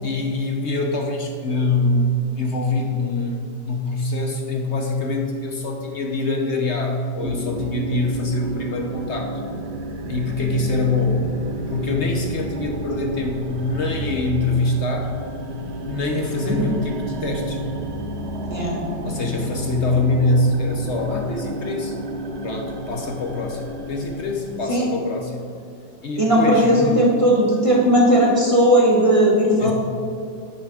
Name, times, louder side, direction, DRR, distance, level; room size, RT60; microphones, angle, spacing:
voice 1, 0.0-9.4 10.1-11.2 11.7-15.1 15.8-17.6 19.0-22.0 22.4-25.4 26.0-27.0 29.6-29.7, left 2 dB, 65° left, 2 dB, 0.6 m, -24 dB
sound 1, 7.2-24.7, right 2 dB, 80° right, 0.6 m, -31 dB
voice 2, 16.4-16.7 18.5-18.7 24.7-24.9 26.2-29.7, equal, 20° right, -3 dB, 1.1 m, -17 dB
10.0 x 6.1 x 4.9 m, 2.6 s
omnidirectional pair, 2.2 m